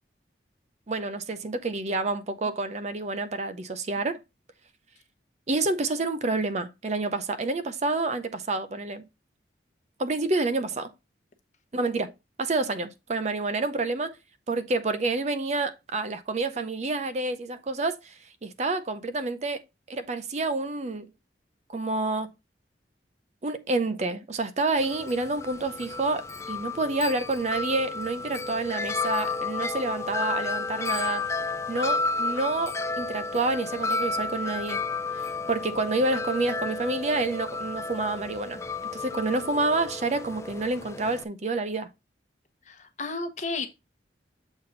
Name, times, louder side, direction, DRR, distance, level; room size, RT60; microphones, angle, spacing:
voice 1, 0.9-4.2 5.5-9.0 10.0-10.9 11.7-12.1 12.4-14.2 14.5-19.6 19.9-21.1 21.7-22.3 23.4-31.2 31.7-34.8 35.5-38.6 38.9-41.9, right 2 dB, 40° right, 0.5 m, -28 dB
Wind chime, 24.8-41.2, left 3 dB, 15° left, 0.3 m, -32 dB
voice 2, 42.6-43.7, left 3 dB, 40° left, 1.0 m, -32 dB
7.0 x 4.1 x 3.8 m
head